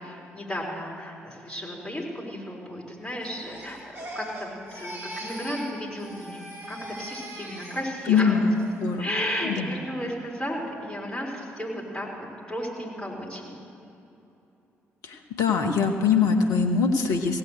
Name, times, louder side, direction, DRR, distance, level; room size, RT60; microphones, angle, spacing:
voice 1, 0.0-8.4 9.0-12.1 12.5-13.6, equal, 10° left, -4 dB, 4.4 m, -34 dB
Crying sobbing, 3.2-5.7 6.0-8.2 8.6-9.0, right 1 dB, 35° right, 2.9 m, -40 dB
voice 2, 8.1-9.1 9.6-9.7 15.0-17.4, left 5 dB, 60° left, 4 dB, 1.0 m, -23 dB
16.5 x 8.3 x 8.0 m, 2.8 s
figure-of-eight pair, 40°, 7 cm